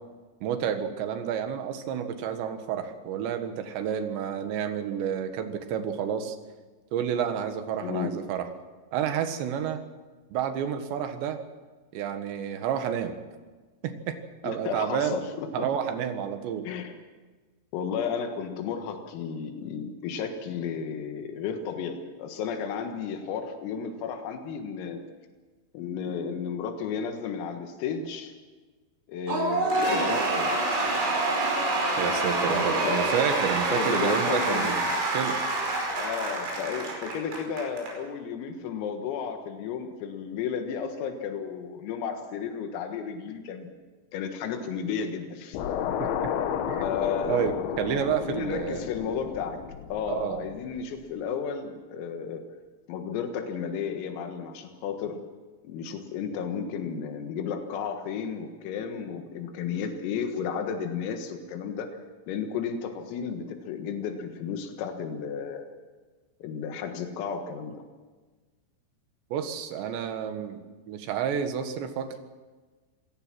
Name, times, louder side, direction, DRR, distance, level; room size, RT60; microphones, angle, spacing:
voice 1, 0.4-6.4 6.9-8.5 8.9-9.8 10.3-11.4 11.9-13.2 13.8-14.2 14.4-15.2 15.5-16.7 32.0-34.9 35.1-35.4 46.0-46.1 46.7-46.8 47.3-48.8 50.1-50.5 69.3-72.2, right 8 dB, 70° right, 7 dB, 3.5 m, -30 dB
voice 2, 7.8-8.2 14.5-15.7 16.7-17.0 17.7-25.0 25.7-28.4 29.1-30.8 32.4-33.1 33.7-34.7 36.0-43.7 44.1-45.6 46.8-47.4 48.3-49.6 49.9-52.4 52.9-55.2 55.6-61.9 62.3-65.7 66.4-67.8, left 6 dB, 90° left, 5 dB, 4.3 m, -33 dB
Cheering / Applause / Crowd, 29.3-37.9, right 2 dB, 85° right, 8.0 m, -27 dB
sound 1, 45.5-50.8, left 8 dB, 70° left, 3.3 m, -32 dB
26.5 x 18.0 x 6.1 m, 1.3 s
omnidirectional pair, 5.9 m